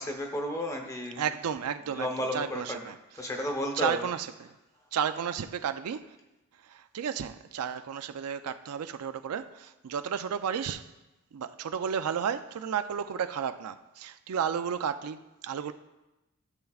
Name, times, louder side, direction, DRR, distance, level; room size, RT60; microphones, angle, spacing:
voice 1, 0.0-1.2 1.9-2.8 3.1-4.1, left 1 dB, 15° left, 3 dB, 1.0 m, -32 dB
voice 2, 1.2-2.9 3.7-4.5 4.9-6.0 6.7-10.9 11.3-15.7, right 7 dB, 80° right, 10 dB, 0.4 m, -33 dB
13.5 x 6.9 x 2.4 m, 0.99 s
head